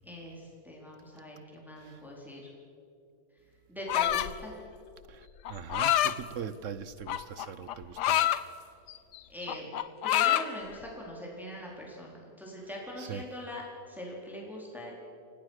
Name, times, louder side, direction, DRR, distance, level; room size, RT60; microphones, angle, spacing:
voice 1, 0.0-2.5 3.7-4.6 9.3-9.7 10.0-14.9, equal, ahead, 4.1 m, -42 dB
sound 1, 3.9-4.4 5.5-6.2 7.1-8.4 8.9-9.2 9.4-10.5, left 12 dB, 85° left, 1.3 m, -26 dB
voice 2, 5.1-8.3 13.0-13.2, right 8 dB, 60° right, 1.0 m, -41 dB
28.0 x 18.0 x 6.5 m
omnidirectional pair, 1.7 m